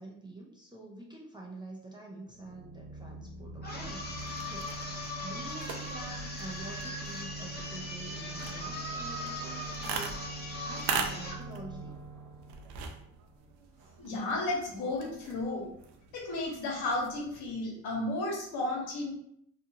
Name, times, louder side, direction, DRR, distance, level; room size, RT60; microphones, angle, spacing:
voice 1, 0.0-4.7 5.2-10.2 10.6-12.0, right 2 dB, 10° right, -3 dB, 0.6 m, -46 dB
sound 1, 2.3-13.9, right 3 dB, 40° right, 1.0 m, -44 dB
sound 2, 3.6-11.5, left 1 dB, 25° left, 0.9 m, -40 dB
sound 3, 4.1-17.5, right 5 dB, 70° right, 0.6 m, -42 dB
voice 2, 14.0-15.6 16.1-19.1, left 2 dB, 60° left, -1 dB, 1.2 m, -33 dB
2.7 x 2.4 x 2.7 m, 0.71 s
supercardioid pair, 75°, 42 cm